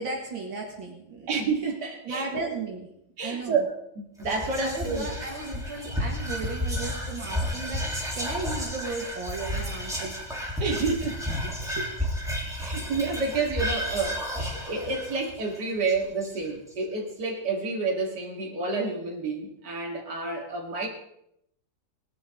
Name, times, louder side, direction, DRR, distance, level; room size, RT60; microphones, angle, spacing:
voice 1, 0.0-1.3 2.0-2.9 3.2-3.6 4.6-10.2 11.6-11.9 12.5-12.9, right 3 dB, 70° right, -2 dB, 2.8 m, -35 dB
voice 2, 1.3-2.3 3.2-5.1 10.6-11.2 11.7-11.8 12.4-20.9, right 4 dB, 55° right, -1 dB, 3.0 m, -29 dB
Whispering, 4.2-16.7, equal, ahead, 3.5 m, -32 dB
20.0 x 11.5 x 3.9 m, 0.78 s
omnidirectional pair, 2.2 m